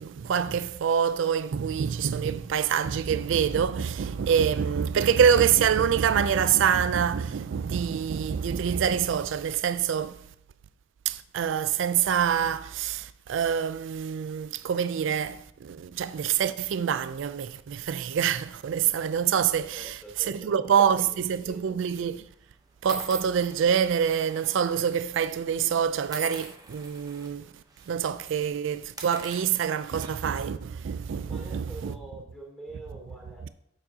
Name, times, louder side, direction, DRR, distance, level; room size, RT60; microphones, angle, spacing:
voice 1, 0.0-10.2 11.1-22.2 22.8-27.5 27.9-31.9, right 8 dB, 65° right, 0.3 m, -26 dB
voice 2, 19.7-21.8 31.2-33.5, right 2 dB, 5° left, 2.7 m, -45 dB
sound 1, 21.2-21.5 22.3-22.4 22.9-24.8 25.1-25.3 26.1-27.3 27.7-27.9 28.2-28.3 28.8-30.4, right 4 dB, 20° right, 0.8 m, -41 dB
8.6 x 7.2 x 2.8 m
head